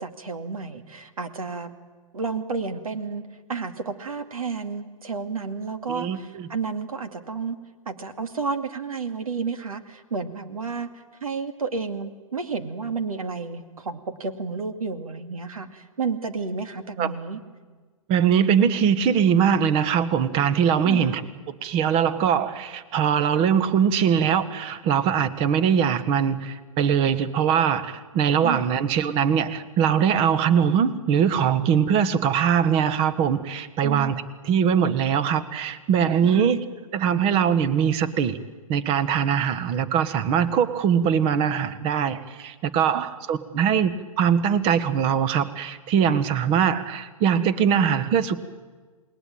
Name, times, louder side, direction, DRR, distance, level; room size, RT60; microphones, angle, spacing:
voice 1, 0.0-1.7 2.1-7.6 7.9-17.4 20.8-21.2 28.4-28.7 33.8-34.2 36.2-36.6 42.9-43.0, right 4 dB, 75° right, 8 dB, 2.4 m, -31 dB
voice 2, 5.9-6.5 17.0-17.1 18.1-21.2 21.6-34.1 34.4-36.6 36.9-38.4 38.7-48.4, right 8 dB, 30° right, 14 dB, 1.3 m, -22 dB
28.0 x 20.0 x 9.2 m, 1.4 s
figure-of-eight pair, 120°, 18 cm